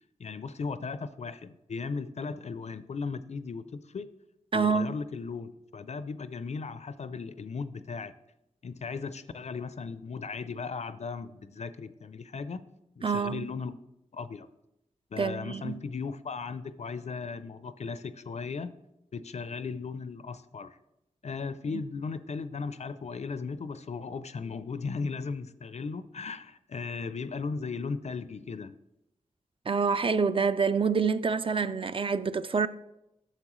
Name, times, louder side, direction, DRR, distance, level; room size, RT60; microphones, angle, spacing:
voice 1, 0.2-4.1 4.5-8.1 8.6-12.6 13.0-13.8 14.1-14.5 15.1-18.7 19.1-20.8 21.2-28.8, left 4 dB, 60° left, 0.4 m, -37 dB
voice 2, 4.5-5.0 13.0-13.5 15.2-15.8 21.7-21.8 29.7-32.7, right 5 dB, 40° right, 0.4 m, -27 dB
9.8 x 6.6 x 3.1 m
cardioid pair, 45°, 13 cm